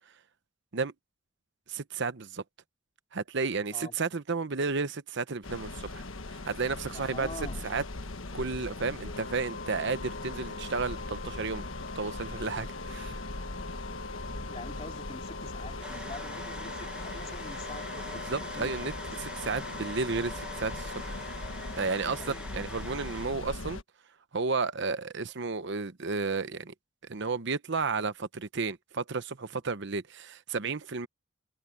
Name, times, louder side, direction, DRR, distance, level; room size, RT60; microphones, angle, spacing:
voice 1, 1.7-2.4 3.1-7.3 7.6-7.8 8.3-11.6 11.9-13.2 18.3-18.9 19.2-21.2 21.8-23.8 24.3-26.7 27.0-31.1, right 4 dB, 60° right, 0.9 m, -32 dB
sound 1, 5.4-23.8, left 2 dB, 80° left, 1.4 m, -40 dB
voice 2, 6.9-7.6 14.5-19.1 22.2-22.7, left 2 dB, 30° left, 2.8 m, -45 dB
Wind instrument woodwind instrument, 9.0-22.4, left 3 dB, 55° left, 2.1 m, -44 dB
sound 2, 15.8-23.3, right 1 dB, 5° right, 1.2 m, -45 dB
head